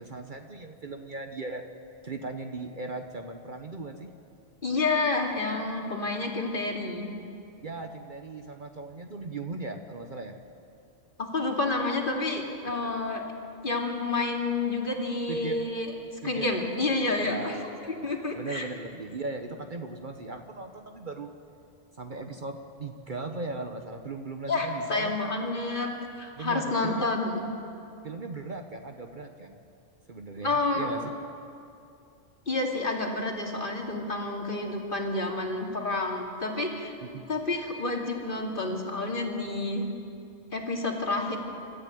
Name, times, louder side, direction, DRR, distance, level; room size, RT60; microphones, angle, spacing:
voice 1, 0.0-1.6 2.0-4.1 7.6-10.4 15.3-15.5 16.2-16.5 17.2-21.3 22.0-25.2 26.4-27.1 28.0-29.6 30.1-31.1 37.0-37.3, right 3 dB, 45° right, 5 dB, 1.1 m, -38 dB
voice 2, 4.6-7.1 11.2-13.2 13.6-15.9 16.2-17.5 18.0-18.7 24.5-25.9 26.2-27.3 30.4-30.9 32.5-36.9 37.3-39.8 40.5-41.4, left 3 dB, 45° left, 0 dB, 2.7 m, -29 dB
26.0 x 13.5 x 9.3 m, 2.6 s
omnidirectional pair, 1.2 m